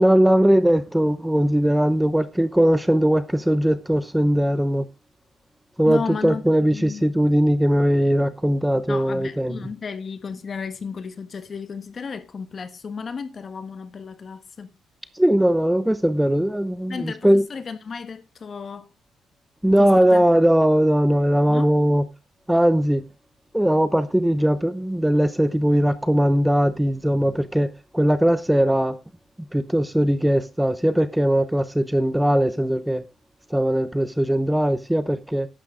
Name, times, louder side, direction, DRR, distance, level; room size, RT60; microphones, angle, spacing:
voice 1, 0.0-4.9 5.8-9.6 15.1-17.5 19.6-22.1 22.5-23.0 23.5-29.0 29.5-33.0 33.5-35.5, equal, 5° right, 0.8 m, -20 dB
voice 2, 5.8-6.4 6.7-7.0 8.9-14.7 16.9-18.9 19.8-20.2 21.5-21.7, left 5 dB, 45° left, 1.3 m, -33 dB
11.5 x 8.4 x 3.8 m
cardioid pair, 90°, 0 cm